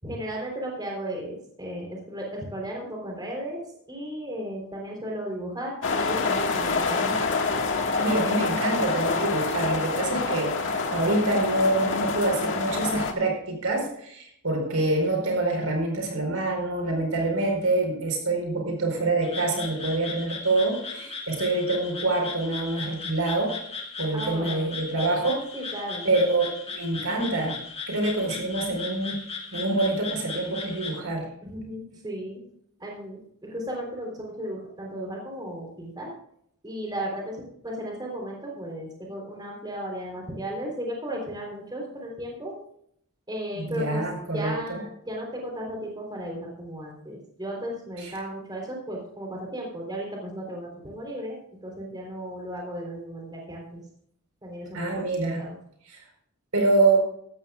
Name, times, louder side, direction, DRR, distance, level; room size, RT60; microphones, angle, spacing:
voice 1, 0.0-3.6 3.9-7.2 24.1-24.7 25.5-26.1 31.4-32.4 32.8-36.1 36.6-42.6 43.3-44.0 44.3-53.8 54.4-55.0 55.4-55.6, equal, 20° right, -1 dB, 3.7 m, -35 dB
sound 1, 5.8-13.1, left 4 dB, 60° left, 1.8 m, -26 dB
voice 2, 8.0-23.5 24.0-25.4 26.0-27.6 27.9-29.2 29.5-31.3 43.6-44.8 48.0-48.1 54.7-55.4 56.5-57.0, right 2 dB, 70° right, 2 dB, 4.6 m, -26 dB
Frog, 19.2-31.0, left 4 dB, 25° left, 2.2 m, -37 dB
16.0 x 14.0 x 2.4 m, 0.68 s
head